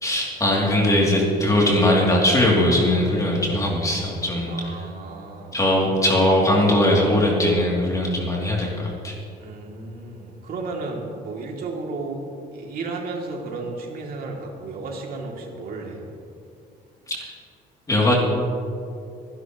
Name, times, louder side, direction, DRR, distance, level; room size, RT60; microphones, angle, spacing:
voice 1, 0.0-4.7 5.5-9.1 17.1-17.2 17.9-18.1, left 1 dB, 20° left, -3 dB, 3.0 m, -20 dB
voice 2, 4.4-5.6 9.4-12.2 12.5-16.0, right 3 dB, 60° right, 0 dB, 2.9 m, -33 dB
24.5 x 11.5 x 3.2 m, 2.5 s
cardioid pair, 110°, 17 cm